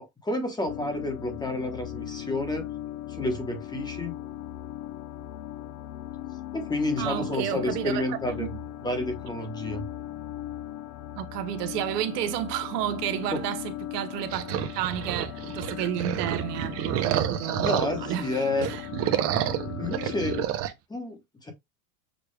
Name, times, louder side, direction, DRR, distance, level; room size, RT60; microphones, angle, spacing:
voice 1, 0.0-2.7 3.1-4.2 6.5-9.9 13.3-13.4 17.5-18.7 19.8-20.4 20.9-21.5, left 1 dB, 10° left, 1.0 m, -30 dB
sound 1, 0.7-20.5, left 13 dB, 75° left, 0.7 m, -38 dB
voice 2, 7.0-8.5 11.1-18.9, right 12 dB, 80° right, 1.0 m, -31 dB
sound 2, 14.3-18.2 18.5-20.7, right 11 dB, 30° right, 0.6 m, -29 dB
6.5 x 2.3 x 3.2 m
supercardioid pair, 145°, 47 cm